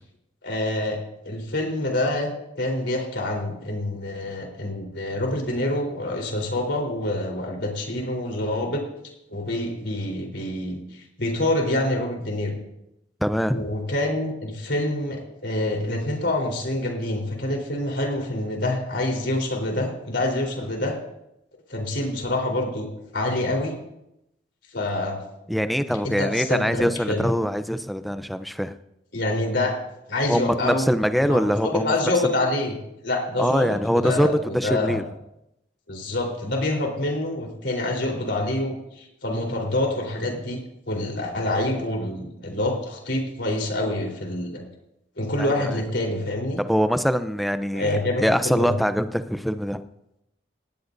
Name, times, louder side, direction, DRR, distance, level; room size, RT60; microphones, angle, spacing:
voice 1, 0.4-1.0 1.2-8.8 9.3-12.6 13.5-21.0 21.7-23.8 24.7-25.2 26.0-27.3 29.1-29.8 30.1-30.8 31.2-32.8 33.0-35.0 35.9-40.6 40.9-44.6 45.2-46.6 47.7-48.8, left 1 dB, 70° left, 0 dB, 4.0 m, -26 dB
voice 2, 13.2-13.7 25.5-28.7 30.3-31.9 32.2-32.3 33.4-35.0 45.4-45.8 46.6-49.8, equal, ahead, 9 dB, 0.6 m, -23 dB
18.5 x 18.0 x 2.7 m, 0.84 s
head